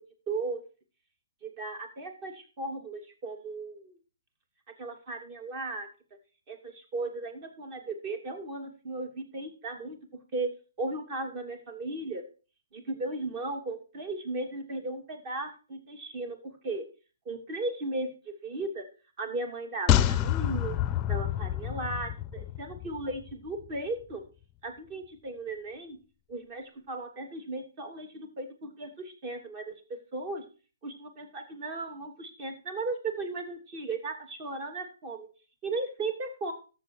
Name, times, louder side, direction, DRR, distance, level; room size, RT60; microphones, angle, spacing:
voice 1, 0.3-0.6 1.4-4.0 4.8-5.9 6.5-10.0 10.3-10.5 10.8-12.2 12.7-16.8 17.2-18.8 19.2-20.8 21.1-24.2 24.6-26.0 26.3-29.7 30.1-30.4 30.8-35.3 35.6-36.5, right 2 dB, 35° right, 6 dB, 2.9 m, -36 dB
sound 1, 19.9-23.3 23.6-23.7, left 12 dB, 25° left, 0.6 m, -28 dB
13.5 x 7.2 x 4.7 m, 0.35 s
hypercardioid pair, 145°, 0 cm